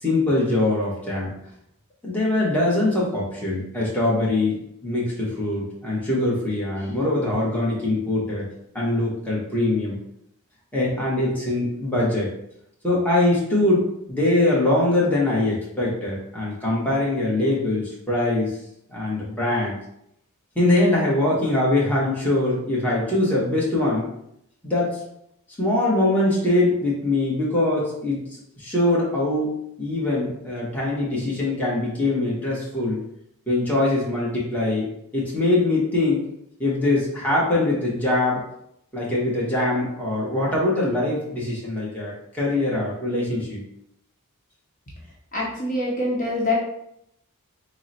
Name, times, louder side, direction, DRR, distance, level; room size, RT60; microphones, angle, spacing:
voice 1, 0.0-1.4 2.0-8.5 8.7-10.0 10.7-12.3 12.8-18.5 18.9-19.8 20.5-24.1 24.6-25.0 25.6-28.2 28.6-33.0 33.5-34.9 35.1-36.2 36.6-38.4 38.9-43.6, left 2 dB, 5° left, -6 dB, 1.0 m, -22 dB
voice 2, 45.3-46.6, left 1 dB, 35° left, -4 dB, 0.9 m, -24 dB
3.8 x 2.0 x 4.1 m, 0.76 s
head